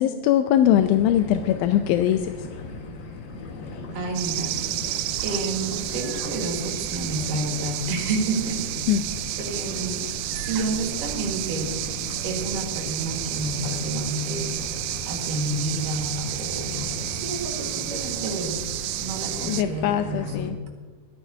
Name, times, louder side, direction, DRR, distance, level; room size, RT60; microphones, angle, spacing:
voice 1, 0.0-2.2 8.9-9.0 19.4-20.6, left 11 dB, 85° left, 8 dB, 2.4 m, -21 dB
sound 1, 0.7-20.5, left 3 dB, 70° left, 3.2 m, -38 dB
voice 2, 3.9-9.0 9.4-11.8 12.2-14.6 15.1-18.6 19.0-20.6, right 2 dB, 65° right, 1 dB, 3.3 m, -30 dB
sound 2, 4.1-19.6, right 15 dB, 85° right, 1.8 m, -31 dB
25.5 x 9.1 x 2.8 m, 1.4 s
omnidirectional pair, 4.1 m